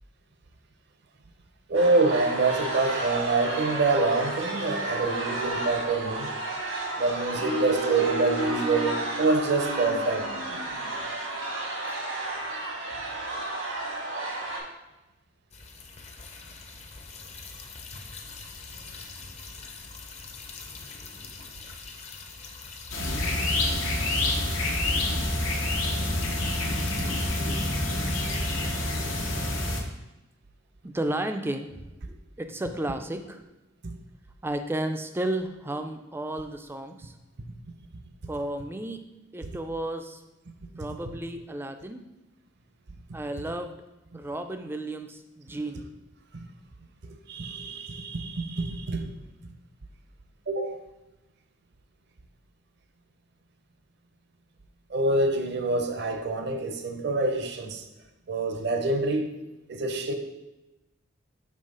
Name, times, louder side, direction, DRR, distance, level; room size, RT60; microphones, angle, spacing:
voice 1, 1.7-6.3 7.0-10.3 47.3-49.1 50.5-50.8 54.9-57.8 58.3-59.3 59.7-60.1, right 3 dB, 55° right, 6 dB, 0.6 m, -26 dB
sound 1, 1.7-14.6, right 2 dB, 90° right, 1.5 m, -32 dB
sound 2, 15.5-28.4, left 4 dB, 35° left, 0.6 m, -43 dB
sound 3, 22.9-29.8, left 1 dB, 90° left, 1.0 m, -27 dB
voice 2, 30.8-33.4 34.4-37.2 38.3-39.0 39.3-40.2 40.8-42.0 43.1-43.8 44.1-45.9, right 1 dB, 10° right, 7 dB, 0.3 m, -33 dB
5.5 x 3.2 x 5.3 m, 1.0 s
head